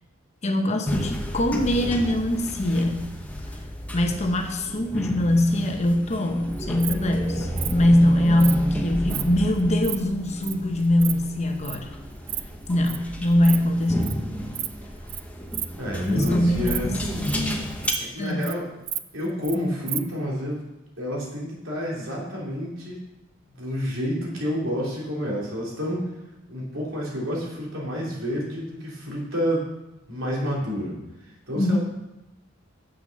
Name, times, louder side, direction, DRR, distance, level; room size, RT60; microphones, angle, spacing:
voice 1, 0.4-3.1 3.9-11.9 12.7-14.2 16.1-17.7 18.2-18.5 31.5-31.8, left 1 dB, 35° left, 5 dB, 0.9 m, -23 dB
sound 1, 0.9-17.9, equal, 5° left, 1.0 m, -32 dB
Insect, 6.5-6.9 7.6-7.7 8.4-8.6 9.0-9.2 9.6-10.0 10.4-10.5 10.8-11.1 11.6-11.8 12.1-12.4 12.7-13.0 13.3-13.6 13.8-14.1 14.5-14.7 15.1-15.2 15.5-15.7 16.0-16.3 16.6-17.5 17.8-18.0 18.3-18.5 18.9-19.6 19.9-20.0, right 14 dB, 50° right, 0.4 m, -31 dB
voice 2, 15.8-16.9 18.0-18.7 19.1-20.6 21.0-23.0 23.5-26.1 26.5-29.7 30.1-30.9 31.5-31.8, equal, 90° right, -4 dB, 3.2 m, -29 dB
7.3 x 6.6 x 6.5 m, 0.96 s
head